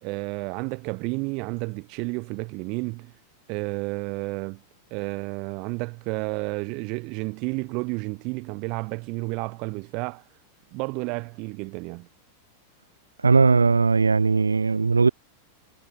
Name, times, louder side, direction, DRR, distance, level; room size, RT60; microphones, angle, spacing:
voice 1, 0.0-3.1 3.5-4.6 4.9-10.2 10.7-12.1, right 30 dB, 45° right, 0.9 m, -31 dB
voice 2, 13.2-15.1, right 4 dB, 75° right, 0.4 m, -19 dB
figure-of-eight pair, 90°, 0 cm